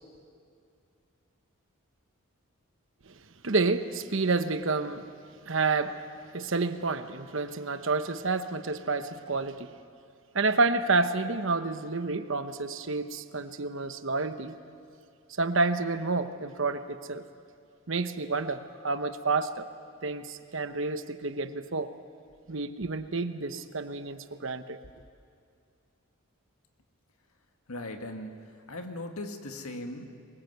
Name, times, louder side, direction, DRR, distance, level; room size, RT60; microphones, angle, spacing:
voice 1, 3.4-5.1 5.5-6.0 6.3-9.7 10.3-14.5 15.4-17.2 17.9-19.7 20.0-21.9 22.5-24.8, right 3 dB, 60° right, 10 dB, 1.0 m, -29 dB
voice 2, 27.7-28.4 28.7-30.1, left 1 dB, 85° left, 5 dB, 2.0 m, -38 dB
23.5 x 21.0 x 8.1 m, 2.4 s
head